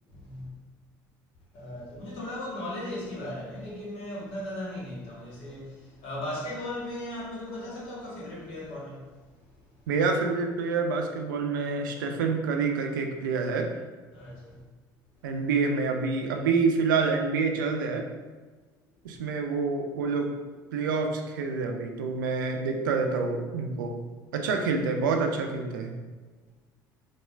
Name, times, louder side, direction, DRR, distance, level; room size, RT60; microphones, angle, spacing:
voice 1, 0.1-0.5 1.5-9.0 14.1-14.6, left 1 dB, 65° left, -6 dB, 1.3 m, -37 dB
voice 2, 9.9-13.7 15.2-18.1 19.0-20.3 20.7-24.0 24.3-26.0, right 4 dB, 85° right, 4 dB, 0.4 m, -27 dB
4.3 x 2.4 x 2.3 m, 1.3 s
hypercardioid pair, 60°, 11 cm